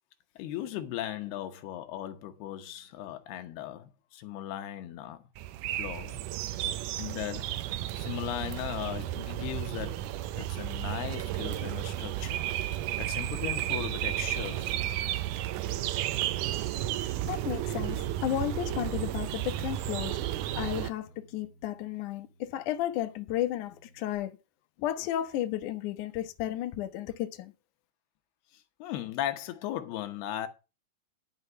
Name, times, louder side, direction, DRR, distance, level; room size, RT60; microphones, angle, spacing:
voice 1, 0.4-5.3 5.8-6.2 7.0-7.6 8.0-12.5 13.0-14.8 17.1-17.2 28.5-30.5, left 12 dB, 80° left, 3.0 m, -37 dB
sound 1, 5.4-20.9, right 13 dB, 80° right, 1.8 m, -33 dB
voice 2, 17.3-20.2 20.6-24.4 24.8-27.5, left 12 dB, 65° left, 2.2 m, -33 dB
Bass guitar, 17.9-24.2, right 1 dB, 25° right, 2.8 m, -51 dB
11.5 x 5.6 x 6.7 m
omnidirectional pair, 4.5 m